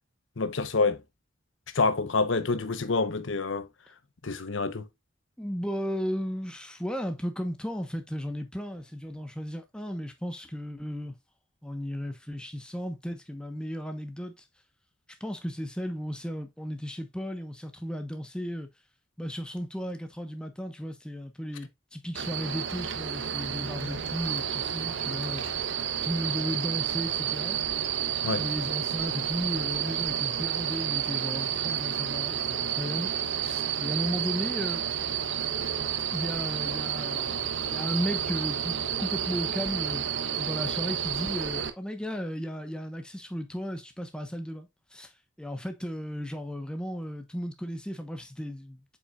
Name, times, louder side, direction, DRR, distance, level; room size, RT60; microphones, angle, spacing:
voice 1, 0.4-1.0 1.7-3.7 4.2-4.9 28.2-28.4, left 3 dB, 80° left, 0.9 m, -27 dB
voice 2, 5.4-11.2 11.6-14.3 15.2-18.7 19.2-25.5 26.0-27.6 28.4-33.1 33.4-34.8 36.1-40.0 40.4-45.1 45.4-48.8, equal, 5° left, 1.0 m, -35 dB
sound 1, 22.2-41.7, right 9 dB, 70° right, 0.9 m, -30 dB
8.0 x 5.7 x 2.4 m
head